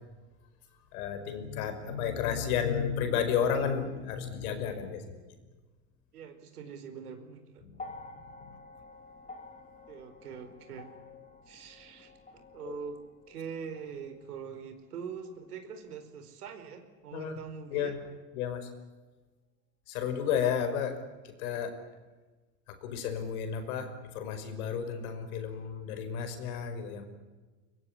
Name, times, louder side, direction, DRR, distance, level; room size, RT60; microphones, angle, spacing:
voice 1, 0.9-5.2 12.6-12.7 17.1-17.3 17.7-18.0 18.3-18.7 19.9-21.0 21.2-21.8 22.7-27.0, left 7 dB, 70° left, 9 dB, 5.5 m, -32 dB
voice 2, 6.1-7.6 9.9-10.9 11.5-13.0 13.3-18.0, right 6 dB, 90° right, 7 dB, 4.8 m, -43 dB
sound 1, 7.7-16.1 17.1-17.2, left 3 dB, 20° left, 4.0 m, -51 dB
23.5 x 22.5 x 9.9 m, 1.3 s
hypercardioid pair, 105°, 44 cm